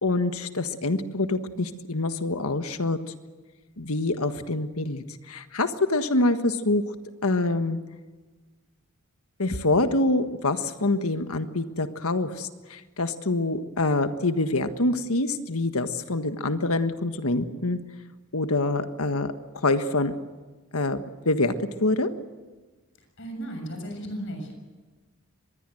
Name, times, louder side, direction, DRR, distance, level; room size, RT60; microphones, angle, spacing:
voice 1, 0.0-3.0 3.8-6.8 7.2-7.8 9.4-17.8 18.3-19.3 19.6-20.1 20.7-22.1, left 2 dB, 80° left, 9 dB, 1.5 m, -25 dB
voice 2, 23.2-24.5, right 1 dB, 55° left, 5 dB, 6.9 m, -35 dB
25.0 x 20.5 x 7.8 m, 1.3 s
head